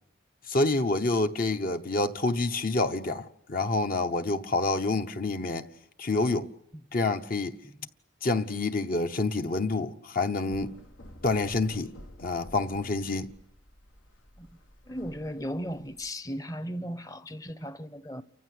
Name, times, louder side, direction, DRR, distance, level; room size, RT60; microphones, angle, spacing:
voice 1, 0.5-5.7 6.0-6.5 6.9-7.6 8.2-10.8 11.2-11.9 12.2-13.3, left 2 dB, 45° left, 1.0 m, -27 dB
sound 1, 10.5-16.1, left 1 dB, 80° left, 1.8 m, -51 dB
voice 2, 14.9-18.2, equal, 15° left, 0.8 m, -36 dB
29.5 x 15.5 x 9.8 m
head